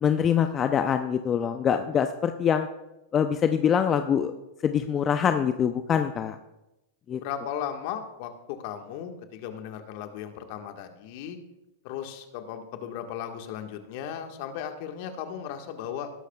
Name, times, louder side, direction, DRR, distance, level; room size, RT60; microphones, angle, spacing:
voice 1, 0.0-2.7 3.1-4.3 4.6-6.4 7.1-7.2, left 8 dB, 30° left, 8 dB, 0.6 m, -24 dB
voice 2, 7.2-11.4 11.8-16.1, left 9 dB, 55° left, 5 dB, 1.6 m, -36 dB
19.5 x 11.5 x 2.4 m, 0.95 s
hypercardioid pair, 105°, 0 cm